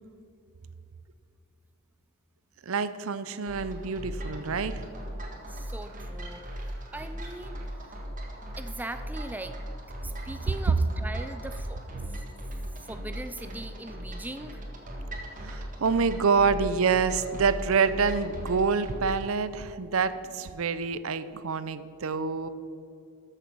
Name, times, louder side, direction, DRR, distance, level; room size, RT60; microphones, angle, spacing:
voice 1, 2.6-4.8 15.4-22.5, right 5 dB, 70° right, 14 dB, 0.6 m, -27 dB
sound 1, 3.5-19.3, equal, 35° right, 1.5 m, -38 dB
voice 2, 5.5-8.0 8.6-9.6 10.0-12.2 12.8-14.6, right 2 dB, 10° right, 9 dB, 0.5 m, -41 dB
13.0 x 6.7 x 6.1 m, 2.8 s
head